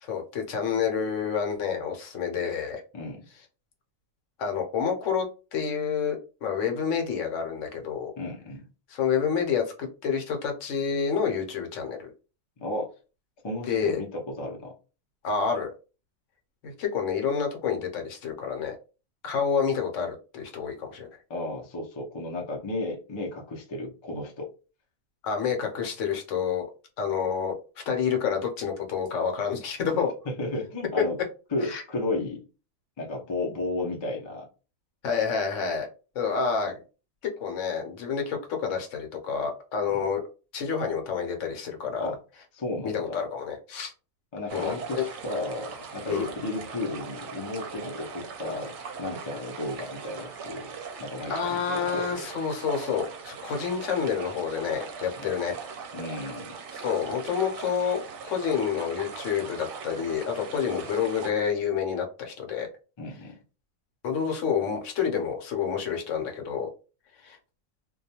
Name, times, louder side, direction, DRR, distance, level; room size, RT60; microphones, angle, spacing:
voice 1, 0.0-2.8 4.4-5.3 5.5-8.1 8.9-12.1 13.7-14.0 15.2-15.7 16.6-18.7 19.2-21.1 25.2-26.6 27.0-27.5 27.9-30.1 31.6-31.8 35.0-35.9 36.1-36.8 37.4-40.2 40.5-42.1 42.8-43.9 44.5-45.0 46.1-46.3 51.3-55.6 56.7-62.7 64.0-66.7 67.2-67.4, left 6 dB, 70° left, 4 dB, 1.0 m, -28 dB
voice 2, 8.2-8.7 12.6-12.9 13.4-14.7 21.3-24.5 30.3-31.2 31.5-32.4 33.0-34.5 39.9-40.0 42.0-42.2 42.5-43.3 44.3-48.7 49.0-50.7 51.0-52.1 55.2-55.3 55.9-56.5 63.0-63.4, left 2 dB, 40° left, -1 dB, 0.4 m, -33 dB
sound 1, 44.5-61.3, right 5 dB, 65° right, 0.8 m, -40 dB
2.3 x 2.2 x 2.8 m, 0.33 s
omnidirectional pair, 1.4 m